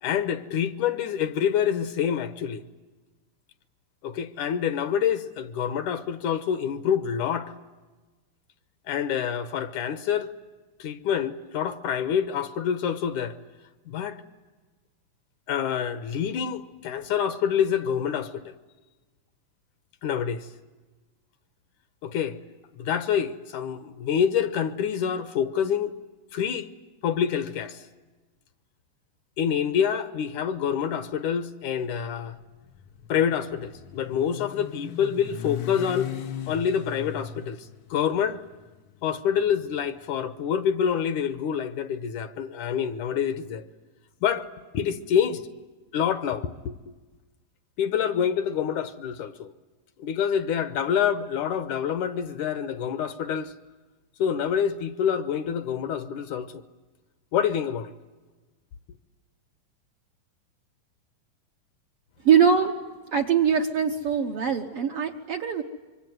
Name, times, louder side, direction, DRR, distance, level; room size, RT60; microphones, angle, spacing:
voice 1, 0.0-2.6 4.0-7.5 8.9-10.3 10.8-13.4 13.9-14.2 15.5-18.5 20.0-20.5 22.0-22.4 22.8-25.9 26.3-26.7 27.0-27.8 29.4-32.4 33.1-36.1 36.5-37.6 37.9-38.4 39.0-43.7 44.2-44.5 44.7-45.4 45.9-46.9 47.8-49.5 50.0-53.5 54.2-56.6 57.3-57.9, left 8 dB, 70° left, 2.3 m, -27 dB
Motorcycle, 32.3-40.5, left 9 dB, 85° left, 1.1 m, -39 dB
voice 2, 62.2-62.8 63.1-65.6, right 7 dB, 60° right, 1.6 m, -22 dB
26.0 x 24.5 x 9.4 m
omnidirectional pair, 3.9 m